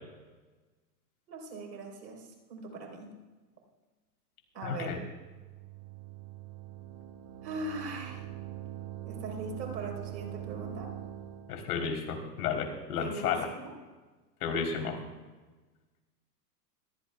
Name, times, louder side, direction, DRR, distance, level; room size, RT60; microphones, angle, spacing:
voice 1, 1.3-3.1 4.5-5.0 7.4-8.2 9.0-10.9 13.0-13.7, right 2 dB, 85° right, 1 dB, 3.9 m, -40 dB
voice 2, 4.6-5.0 11.5-13.5 14.4-15.0, left 6 dB, 65° left, 3 dB, 3.5 m, -32 dB
sound 1, 4.8-11.6, right 13 dB, 55° right, 1.5 m, -43 dB
24.5 x 15.5 x 2.3 m, 1.3 s
hypercardioid pair, 120°, 50 cm